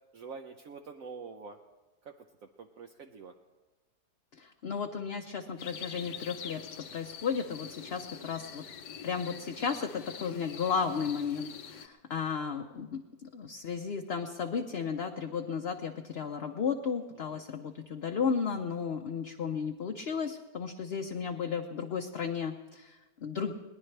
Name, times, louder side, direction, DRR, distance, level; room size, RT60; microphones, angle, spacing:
voice 1, 0.1-1.6 2.0-2.2 2.6-3.3 8.1-8.3 17.3-17.4, right 5 dB, 60° right, 4 dB, 1.1 m, -46 dB
voice 2, 4.4-8.6 9.0-23.5, left 6 dB, 50° left, 3 dB, 0.8 m, -34 dB
sound 1, 5.6-11.9, left 7 dB, 90° left, 1.5 m, -45 dB
22.0 x 18.5 x 3.3 m, 1.1 s
omnidirectional pair, 1.7 m